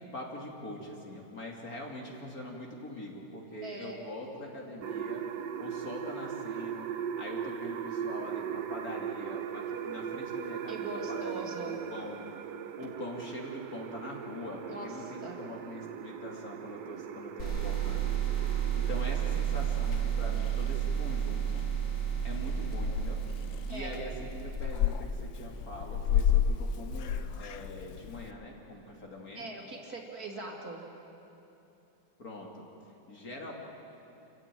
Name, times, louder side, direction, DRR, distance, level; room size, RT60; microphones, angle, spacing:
voice 1, 0.0-5.2 5.6-6.9 7.2-12.2 12.8-21.6 22.2-23.2 23.7-29.5 32.2-32.6 33.1-33.5, left 1 dB, 50° left, -1 dB, 3.1 m, -43 dB
voice 2, 3.6-4.0 10.7-11.8 14.7-14.9 15.2-15.4 23.7-23.9 29.3-30.8, right 2 dB, 50° right, 0 dB, 2.9 m, -41 dB
sound 1, 4.8-19.4, right 8 dB, 70° right, 1.3 m, -39 dB
sound 2, 17.4-24.9, right 10 dB, 65° left, 4.7 m, -32 dB
Purr / Meow, 19.5-28.3, left 8 dB, 80° left, 1.6 m, -33 dB
28.0 x 15.0 x 9.1 m, 2.9 s
omnidirectional pair, 2.1 m